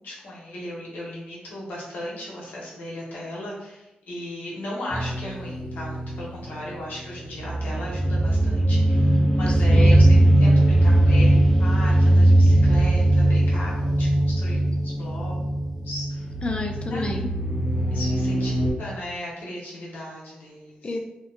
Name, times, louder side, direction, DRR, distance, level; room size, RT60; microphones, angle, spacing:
voice 1, 0.0-10.1 10.4-16.3 16.9-17.1 17.9-20.8, left 1 dB, 85° left, -5 dB, 0.9 m, -36 dB
sound 1, 4.9-18.7, right 1 dB, 5° right, 0.9 m, -20 dB
voice 2, 9.5-10.2 16.4-17.3 20.8-21.0, left 2 dB, 35° left, 3 dB, 0.4 m, -30 dB
2.8 x 2.2 x 2.3 m, 0.94 s
cardioid pair, 70°, 3 cm